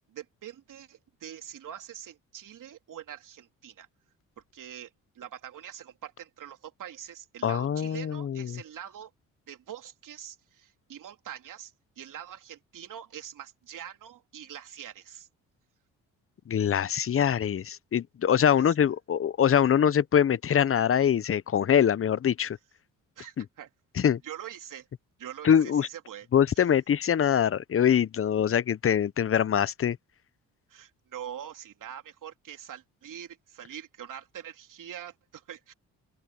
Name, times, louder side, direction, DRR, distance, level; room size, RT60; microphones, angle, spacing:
voice 1, 0.1-3.9 4.5-9.1 9.5-15.3 18.6-18.7 23.2-23.7 24.2-24.9 25.2-26.3 30.7-35.7, right 10 dB, 65° right, 3.2 m, -44 dB
voice 2, 7.4-8.6 16.5-22.6 23.4-23.5 24.0-24.2 25.4-25.9 26.3-30.0, left 8 dB, 40° left, 0.8 m, -24 dB
open air
supercardioid pair, 65°, 34 cm